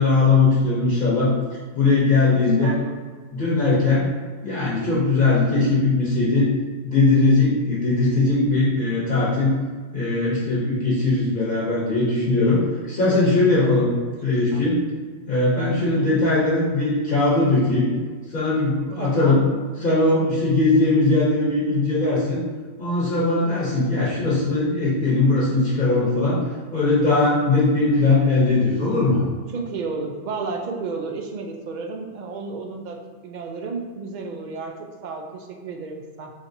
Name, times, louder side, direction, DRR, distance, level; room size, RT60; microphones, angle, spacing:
voice 1, 0.0-1.3 1.7-2.8 3.3-4.1 4.4-6.5 6.8-9.5 9.9-12.6 12.9-13.9 14.2-14.8 15.3-17.9 18.3-19.4 19.8-22.4 22.8-26.4 26.7-29.2, left 3 dB, 50° left, -7 dB, 1.0 m, -20 dB
voice 2, 2.3-2.9 13.5-13.9 14.3-14.6 15.8-16.1 19.0-19.4 29.5-36.3, right 4 dB, 60° right, 2 dB, 0.5 m, -32 dB
4.9 x 2.8 x 2.6 m, 1.5 s
omnidirectional pair, 1.2 m